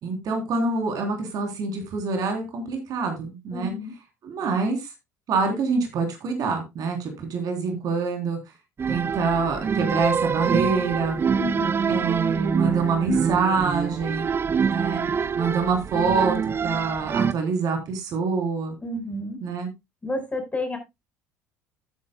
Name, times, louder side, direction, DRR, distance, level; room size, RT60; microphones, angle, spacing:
voice 1, 0.0-3.7 4.2-4.9 5.3-8.4 8.9-11.2 11.9-14.3 14.6-15.0 15.3-16.4 16.6-18.8 19.4-19.7, right 4 dB, 50° right, 3.7 m, -25 dB
voice 2, 3.5-3.9 11.3-12.0 18.8-19.4 20.0-20.8, left 1 dB, 20° left, 5.1 m, -30 dB
sound 1, 8.8-17.3, right 6 dB, 30° right, 0.6 m, -25 dB
12.5 x 9.9 x 2.3 m
hypercardioid pair, 60°, 8 cm